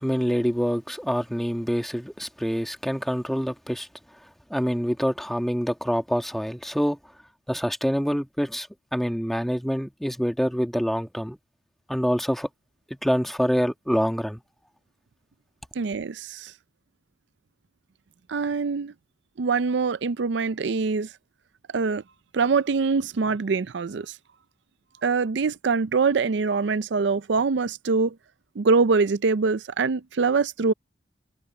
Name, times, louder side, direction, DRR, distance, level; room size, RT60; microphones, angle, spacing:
voice 1, 0.0-3.9 4.5-7.0 7.5-11.4 11.9-12.5 12.9-14.4, equal, ahead, 1.8 m, -26 dB
voice 2, 15.8-16.5 18.3-18.9 19.4-21.1 21.7-22.0 22.3-24.2 25.0-28.2 28.6-30.7, right 4 dB, 75° right, 0.5 m, -24 dB
head